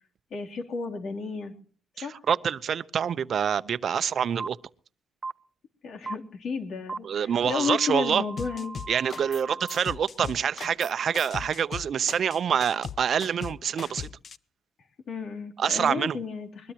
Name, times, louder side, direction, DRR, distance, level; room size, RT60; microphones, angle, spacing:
voice 1, 0.3-1.5 2.0-2.2 5.8-8.7 15.1-16.7, left 5 dB, 65° left, 3.3 m, -32 dB
voice 2, 2.0-4.6 7.0-8.2 8.9-14.1 15.6-16.2, right 8 dB, 55° right, 0.8 m, -26 dB
sound 1, 4.4-4.5 5.2-5.3 6.1-6.2 6.9-7.0 7.6-9.8, right 3 dB, 25° right, 0.8 m, -38 dB
sound 2, 8.4-9.4 9.7-14.4, left 7 dB, 50° left, 0.6 m, -39 dB
21.5 x 21.0 x 3.0 m
cardioid pair, 90°, 0 cm